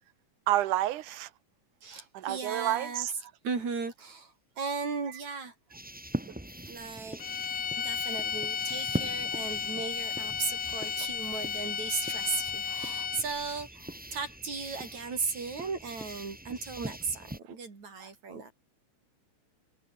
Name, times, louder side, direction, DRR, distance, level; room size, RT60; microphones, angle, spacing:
voice 1, 0.5-1.3 1.9-3.1 18.0-18.1, right 14 dB, 90° right, 2.6 m, -30 dB
voice 2, 1.8-3.1 3.4-5.5 6.7-7.2 7.8-18.5, right 4 dB, 65° right, 6.2 m, -36 dB
sound 1, 5.7-17.4, right 1 dB, 5° right, 0.6 m, -42 dB
sound 2, 7.2-13.4, left 7 dB, 45° left, 2.1 m, -34 dB
omnidirectional pair, 3.4 m